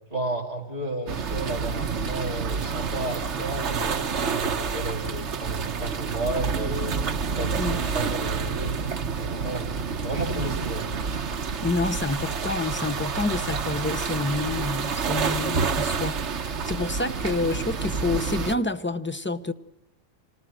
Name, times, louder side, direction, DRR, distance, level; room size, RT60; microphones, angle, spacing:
voice 1, 0.1-7.0 7.4-9.7 10.0-10.9, right 2 dB, 30° right, 3.8 m, -33 dB
sound 1, 1.1-18.6, right 5 dB, 70° right, 1.3 m, -28 dB
voice 2, 11.6-19.5, left 3 dB, 10° left, 0.6 m, -28 dB
26.5 x 19.5 x 7.7 m
omnidirectional pair, 1.2 m